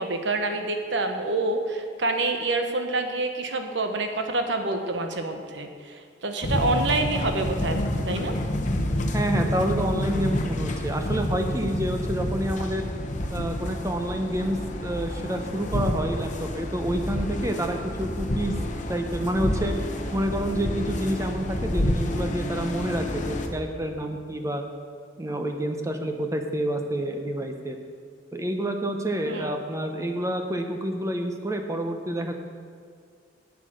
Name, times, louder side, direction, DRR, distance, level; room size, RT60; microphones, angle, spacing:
voice 1, 0.0-7.8 8.1-8.4 29.3-29.5, right 2 dB, 70° right, 6 dB, 1.1 m, -27 dB
sound 1, 6.4-23.5, left 1 dB, 45° left, 0.9 m, -29 dB
voice 2, 9.1-12.9 13.3-18.6 18.9-19.7 20.1-24.6 25.2-27.8 28.3-32.3, right 1 dB, 15° right, 5 dB, 0.8 m, -28 dB
8.4 x 8.2 x 6.3 m, 2.1 s
head